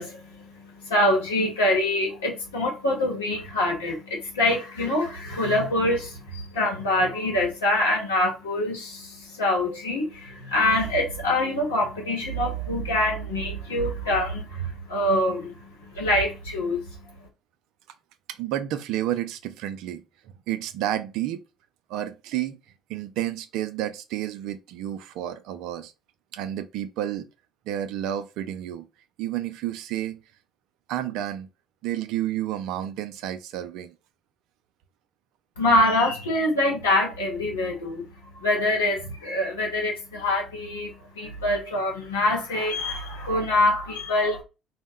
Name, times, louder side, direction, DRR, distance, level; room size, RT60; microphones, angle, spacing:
voice 1, 0.0-16.9 35.6-38.0 38.3-44.4, left 1 dB, 85° left, 0.9 m, -25 dB
voice 2, 18.3-20.0 20.5-21.4 21.9-22.6 22.9-25.9 26.3-27.3 27.7-28.9 29.2-30.2 30.9-31.5 31.8-33.9, right 12 dB, 65° right, 0.3 m, -30 dB
2.2 x 2.0 x 3.4 m
hypercardioid pair, 55°, 0 cm